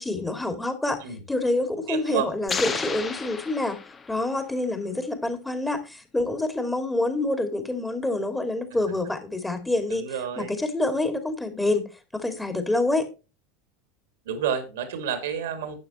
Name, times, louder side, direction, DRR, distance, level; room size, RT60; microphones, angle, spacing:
voice 1, 0.0-1.0 1.3-3.8 4.1-10.1 10.4-11.9 12.1-13.1, left 2 dB, 10° left, 2.5 m, -27 dB
voice 2, 1.9-2.3 9.9-10.5 14.3-15.7, right 8 dB, 65° right, 2.5 m, -29 dB
sound 1, 2.5-4.4, left 5 dB, 25° left, 1.6 m, -32 dB
12.0 x 8.9 x 3.1 m
figure-of-eight pair, 75°, 0 cm